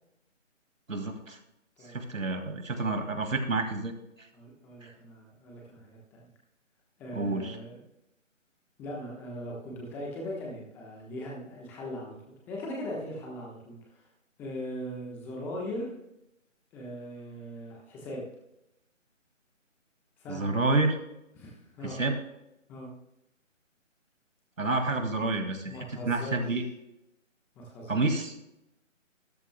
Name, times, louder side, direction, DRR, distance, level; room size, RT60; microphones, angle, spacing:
voice 1, 0.9-1.4 1.8-4.3 4.8-4.9 7.1-7.6 20.3-21.0 21.8-22.2 24.6-25.8 26.0-26.6 27.9-28.3, right 2 dB, 80° right, 5 dB, 2.2 m, -29 dB
voice 2, 4.3-6.3 7.0-7.8 8.8-12.2 12.5-14.0 14.4-15.9 16.7-18.2 20.2-20.6 21.3-22.0 22.7-22.9 25.6-26.5 27.6-28.2, equal, 5° left, -2 dB, 1.1 m, -40 dB
13.0 x 12.5 x 2.2 m, 0.86 s
figure-of-eight pair, 160°, 38 cm